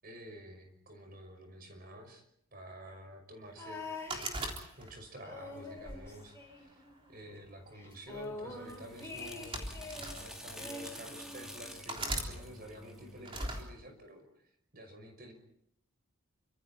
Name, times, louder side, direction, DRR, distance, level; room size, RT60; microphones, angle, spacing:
voice 1, 0.0-2.2 2.5-3.8 4.8-6.8 7.1-9.7 10.2-14.3 14.7-15.3, right 1 dB, 45° right, 6 dB, 5.8 m, -50 dB
sound 1, 3.6-4.9 5.2-7.1 7.4-7.5 7.7-10.1 10.6-11.8 12.7-12.8, left 3 dB, 15° left, 5.9 m, -45 dB
sound 2, 4.1-5.2 5.8-7.0 7.9-8.2 9.2-10.3 11.0-11.1 11.9-12.3 13.3-13.6, right 2 dB, 25° right, 3.5 m, -38 dB
sound 3, 8.2-13.7, equal, 5° right, 2.8 m, -49 dB
29.0 x 26.0 x 4.3 m, 0.71 s
head